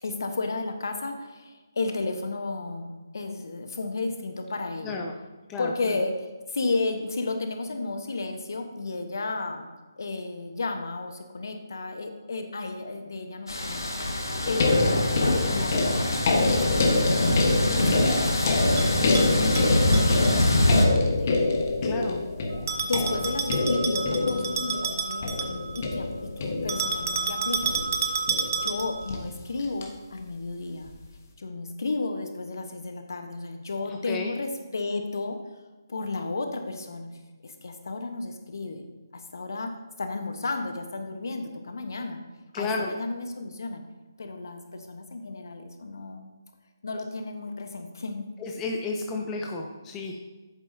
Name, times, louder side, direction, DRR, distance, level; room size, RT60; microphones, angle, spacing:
voice 1, 0.0-5.0 5.6-9.7 10.0-15.0 15.3-17.3 17.7-21.4 22.8-27.8 28.3-30.9 31.4-35.6 35.9-38.8 39.1-39.7 40.0-42.2 42.5-43.8 44.2-46.3 46.8-48.2, left 3 dB, 60° left, 6 dB, 1.1 m, -33 dB
voice 2, 4.8-5.1 5.5-5.9 21.8-22.2 33.9-34.3 42.5-42.9 48.4-50.2, left 3 dB, 15° left, 1 dB, 0.6 m, -32 dB
sound 1, 13.5-20.9, left 1 dB, 75° left, 1.7 m, -24 dB
sound 2, 14.4-29.8 30.9-31.0, left 3 dB, 40° left, 1.2 m, -27 dB
Bell, 18.8-20.5 22.7-25.9 26.7-29.1, right 5 dB, 40° right, 0.8 m, -30 dB
10.5 x 8.3 x 2.7 m, 1.2 s
figure-of-eight pair, 150°, 2 cm